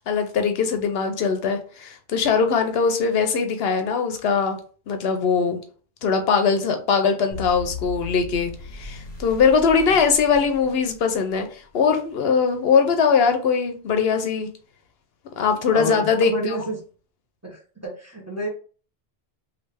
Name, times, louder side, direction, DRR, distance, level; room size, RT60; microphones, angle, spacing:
voice 1, 0.1-4.6 4.9-5.6 6.0-14.5 15.4-16.6, left 5 dB, 70° left, 6 dB, 0.8 m, -21 dB
sound 1, 7.3-11.4, left 3 dB, 45° left, 0.9 m, -37 dB
voice 2, 15.7-16.8 17.4-18.5, right 1 dB, 15° right, -3 dB, 0.9 m, -30 dB
3.1 x 2.6 x 3.3 m, 0.41 s
omnidirectional pair, 1.1 m